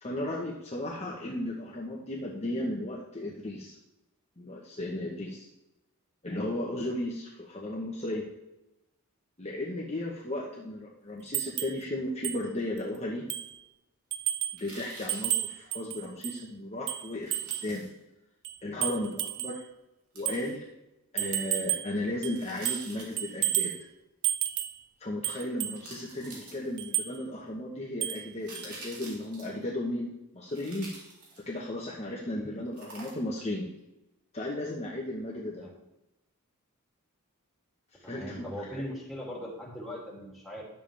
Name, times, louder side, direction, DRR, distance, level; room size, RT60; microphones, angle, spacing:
voice 1, 0.0-3.7 4.4-5.5 6.2-8.2 9.4-13.3 14.5-17.8 18.6-19.6 20.1-20.6 21.1-23.7 25.0-30.1 30.3-30.9 31.5-33.6 34.3-35.6 38.1-38.8, left 1 dB, 30° left, -3 dB, 1.1 m, -35 dB
sound 1, 11.3-11.8 12.2-12.4 12.8-12.9 13.3-13.6 14.1-14.6 15.1-16.4 16.9-17.7 18.4-19.6 20.3-20.4 21.2-21.9 22.2-22.9 23.2-23.8 24.2-24.8 25.2-25.8 26.8-27.1 28.0-28.3 28.5-28.7, right 13 dB, 55° right, 0.6 m, -31 dB
sound 2, 14.5-15.4 17.2-17.9 20.2-20.5 22.3-23.4 25.0-25.1 25.7-26.9 28.1-29.6 30.5-31.6 32.7-33.4 33.8-33.9, right 3 dB, 90° right, 3.1 m, -47 dB
voice 2, 32.3-32.6 35.6-35.7 38.0-40.6, equal, ahead, -5 dB, 2.6 m, -40 dB
11.0 x 7.5 x 3.4 m, 0.93 s
head